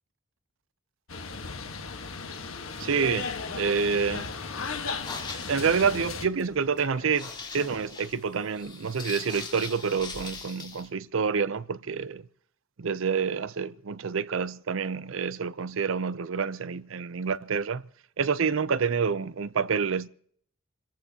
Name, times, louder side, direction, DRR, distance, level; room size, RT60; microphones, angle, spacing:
sound 1, 1.1-6.2, left 4 dB, 80° left, 1.4 m, -36 dB
sound 2, 2.4-5.2 5.5-6.5 6.8-8.1, left 3 dB, 40° left, 3.6 m, -51 dB
voice 1, 2.8-4.3 5.5-12.2 12.8-17.8 18.2-20.1, right 6 dB, 70° right, 0.6 m, -28 dB
sound 3, 4.9-10.9, left 4 dB, 20° left, 3.6 m, -41 dB
29.0 x 15.0 x 2.9 m
head